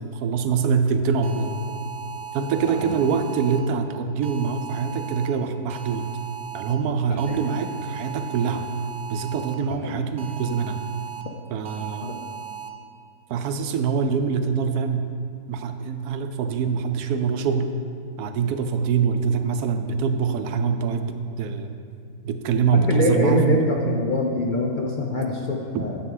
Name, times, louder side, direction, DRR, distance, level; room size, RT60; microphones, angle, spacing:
voice 1, 0.0-1.6 2.3-6.1 6.5-8.6 9.1-10.8 11.5-12.2 13.3-15.1 15.5-17.8 18.2-21.8 22.2-23.7 25.7-25.8, right 6 dB, 90° right, 8 dB, 1.1 m, -24 dB
sound 1, 1.2-3.6 4.2-5.3 5.7-6.8 7.2-9.5 10.2-11.2 11.7-12.7, right 9 dB, 60° right, 0.8 m, -37 dB
voice 2, 7.1-7.4 9.8-10.0 12.0-12.1 22.7-26.0, left 2 dB, 50° left, 0 dB, 0.6 m, -24 dB
10.5 x 6.9 x 3.8 m, 2.3 s
omnidirectional pair, 1.6 m